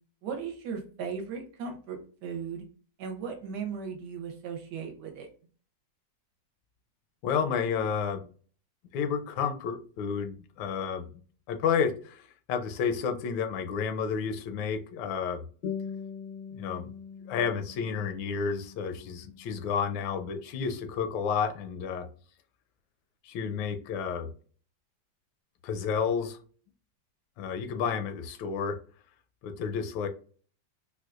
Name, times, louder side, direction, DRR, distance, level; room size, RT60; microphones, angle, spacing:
voice 1, 0.2-2.6 3.0-5.3, right 6 dB, 70° right, 4 dB, 1.2 m, -37 dB
voice 2, 7.2-8.2 8.9-11.1 11.5-15.4 16.5-16.9 17.3-22.1 23.2-24.3 25.6-26.4 27.4-28.8 29.4-30.1, left 6 dB, 85° left, 8 dB, 1.3 m, -31 dB
sound 1, 15.6-20.6, left 7 dB, 70° left, 0.4 m, -42 dB
4.3 x 2.3 x 2.4 m, 0.42 s
omnidirectional pair, 2.0 m